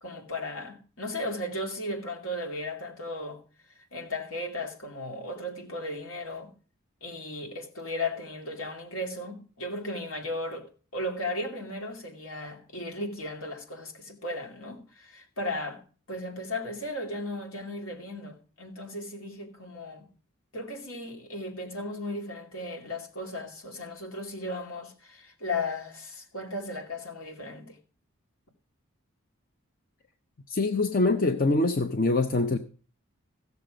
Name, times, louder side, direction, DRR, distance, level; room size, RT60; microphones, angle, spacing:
voice 1, 0.0-3.4 3.9-6.5 7.0-15.8 16.1-20.1 20.5-27.8, left 1 dB, 75° left, 2.5 m, -36 dB
voice 2, 30.5-32.6, left 2 dB, 40° left, 0.5 m, -24 dB
15.5 x 6.8 x 5.0 m
head